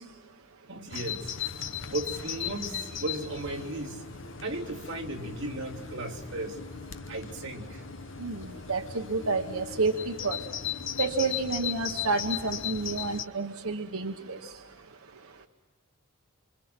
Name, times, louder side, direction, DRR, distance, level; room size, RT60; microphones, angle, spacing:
voice 1, 0.7-1.3 1.9-4.1 4.4-6.6 7.1-7.8, right 2 dB, 55° right, -2 dB, 3.3 m, -36 dB
Bird vocalization bird call bird song, 0.9-13.2, left 8 dB, 60° left, 0.9 m, -37 dB
voice 2, 8.7-10.4 11.0-14.4, right 3 dB, 85° right, 4 dB, 1.1 m, -29 dB
26.5 x 25.5 x 6.0 m, 1.3 s
head